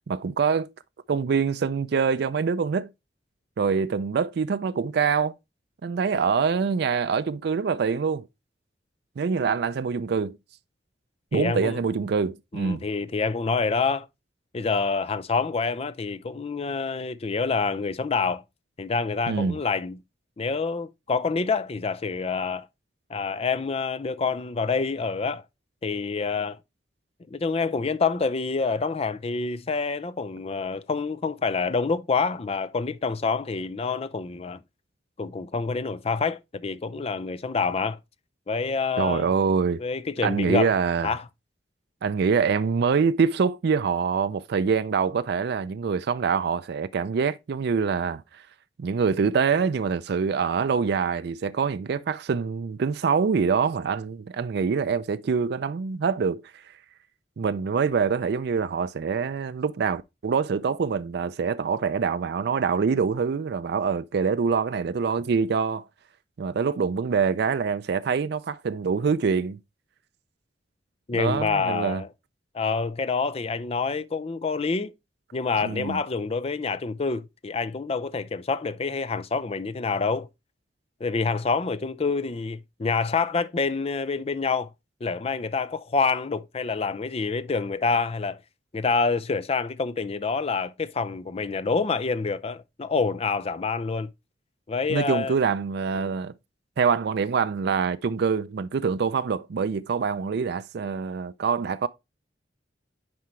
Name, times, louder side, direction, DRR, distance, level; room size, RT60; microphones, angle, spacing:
voice 1, 0.1-0.7 1.1-2.9 3.6-5.3 5.8-8.3 9.2-10.4 11.3-12.8 19.3-19.6 39.0-39.8 40.2-41.2 42.0-48.4 48.8-56.7 57.4-65.9 66.4-69.6 71.1-72.0 75.6-76.0 94.9-96.3 96.8-101.9, right 5 dB, 65° right, 0.4 m, -25 dB
voice 2, 11.3-11.8 12.5-14.1 14.5-18.4 18.8-20.0 20.4-22.7 23.1-25.4 25.8-26.6 27.3-34.6 35.2-38.0 38.5-39.3 39.8-40.7 41.0-41.2 71.1-72.1 72.5-74.9 75.3-80.3 81.0-84.7 85.0-88.4 88.7-94.1 94.7-95.4 96.0-96.1, left 4 dB, 35° left, 0.5 m, -27 dB
9.6 x 4.7 x 3.1 m
head